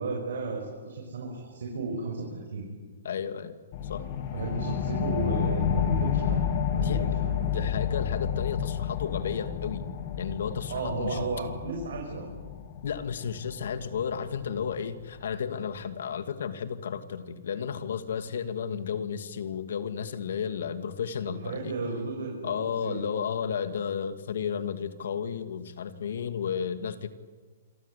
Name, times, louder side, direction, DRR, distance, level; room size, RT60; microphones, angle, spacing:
voice 1, 0.0-2.7 4.3-6.4 6.7-7.7 10.7-12.3 21.2-23.0, right 4 dB, 80° right, 0 dB, 6.5 m, -34 dB
voice 2, 3.0-3.6 3.8-4.0 6.7-9.8 10.2-11.2 12.8-21.7 22.4-27.1, left 7 dB, 75° left, 9 dB, 2.4 m, -33 dB
sound 1, 3.7-14.8, left 8 dB, 40° left, 3.0 m, -30 dB
28.0 x 23.5 x 8.4 m, 1.4 s
hypercardioid pair, 155°, 0 cm